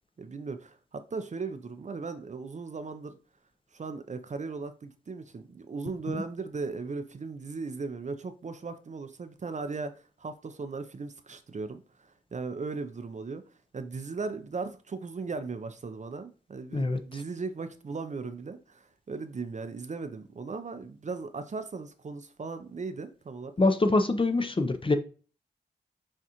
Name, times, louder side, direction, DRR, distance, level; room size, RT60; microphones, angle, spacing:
voice 1, 0.2-3.2 3.7-13.4 13.7-23.5, right 4 dB, 40° right, 0.5 m, -37 dB
voice 2, 16.7-17.2 23.6-25.0, left 2 dB, 30° left, 0.6 m, -25 dB
6.3 x 2.4 x 2.9 m
cardioid pair, 45°, 18 cm